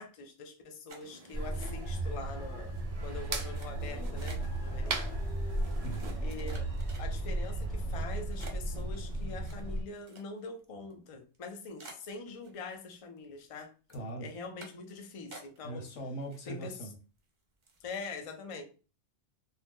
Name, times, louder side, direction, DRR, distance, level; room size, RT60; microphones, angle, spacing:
voice 1, 0.0-2.8 3.0-5.2 6.2-6.7 7.0-13.7 14.2-15.8 16.5-16.8 17.8-18.6, left 3 dB, 50° left, 0.4 m, -44 dB
sound 1, 0.9-2.1 2.4-2.8 3.3-4.6 5.3-5.4 6.0-7.4 7.9-8.0 8.4-10.6 10.9-11.0 11.3-11.4 11.8-12.8 13.2-13.6 13.9-14.1 14.6-14.9 15.3-15.9 16.2-16.8 17.2-17.3 17.6-17.9, right 3 dB, 45° right, 0.7 m, -52 dB
sound 2, 1.0-6.2, right 4 dB, 75° right, 0.3 m, -43 dB
sound 3, 1.3-9.8, right 1 dB, 65° left, 1.3 m, -35 dB
voice 2, 5.8-6.2 13.9-14.3 15.6-16.9, right 2 dB, 85° left, 1.2 m, -40 dB
2.7 x 2.2 x 3.4 m
omnidirectional pair, 1.2 m